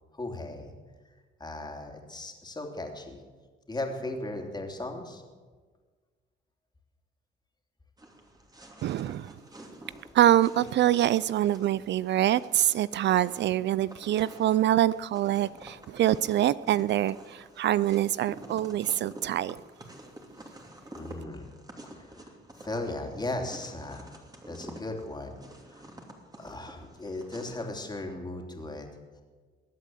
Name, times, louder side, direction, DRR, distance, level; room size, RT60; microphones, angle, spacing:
voice 1, 0.1-0.7 1.4-3.2 3.7-5.2 20.9-21.5 21.8-22.3 22.6-24.2 24.4-25.4 25.7-25.9 26.4-28.9, left 2 dB, 20° left, 3.1 m, -37 dB
sound 1, 8.0-27.7, right 1 dB, 20° right, 2.9 m, -49 dB
voice 2, 8.8-9.3 10.1-19.6, right 12 dB, 65° right, 0.4 m, -25 dB
22.0 x 8.3 x 7.8 m
cardioid pair, 90°, 20 cm